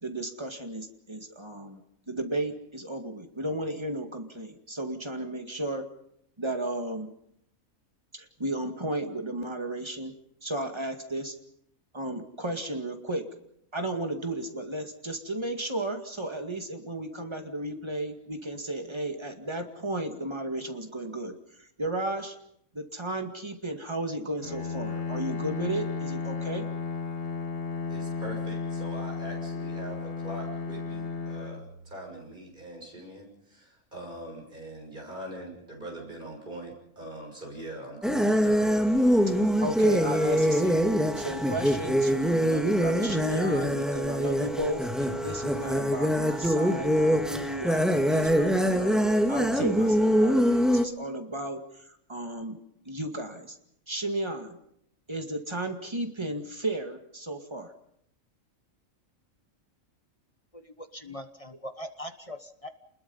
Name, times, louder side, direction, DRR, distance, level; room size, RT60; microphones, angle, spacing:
voice 1, 0.0-1.8 2.1-5.9 6.4-7.1 8.1-10.1 10.4-11.4 11.9-13.3 13.7-21.3 21.6-22.4 22.7-26.6 39.3-40.8 41.2-52.6 52.9-53.6 53.9-54.6 55.1-57.7, right 1 dB, 20° right, 5 dB, 2.1 m, -34 dB
Bowed string instrument, 24.4-32.4, left 4 dB, 45° left, 1.4 m, -34 dB
voice 2, 27.9-38.7, right 1 dB, 35° right, 0 dB, 6.7 m, -42 dB
sound 1, 38.0-50.9, equal, ahead, 1.7 m, -24 dB
voice 3, 60.8-62.7, equal, 25° left, 7 dB, 1.2 m, -41 dB
28.5 x 21.0 x 5.6 m, 0.75 s
omnidirectional pair, 1.4 m